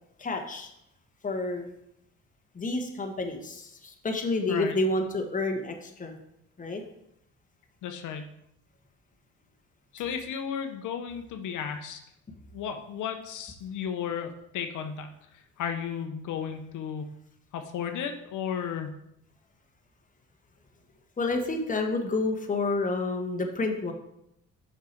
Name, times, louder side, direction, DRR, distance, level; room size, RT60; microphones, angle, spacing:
voice 1, 0.2-0.7 1.2-1.7 2.5-6.1 6.6-6.8 21.2-23.9, left 2 dB, 25° left, 3 dB, 1.2 m, -29 dB
voice 2, 7.8-8.3 9.9-12.0 12.5-15.1 15.6-17.1 17.5-19.0, left 7 dB, 80° left, 6 dB, 0.8 m, -34 dB
6.0 x 5.5 x 4.4 m, 0.79 s
cardioid pair, 90°, 30 cm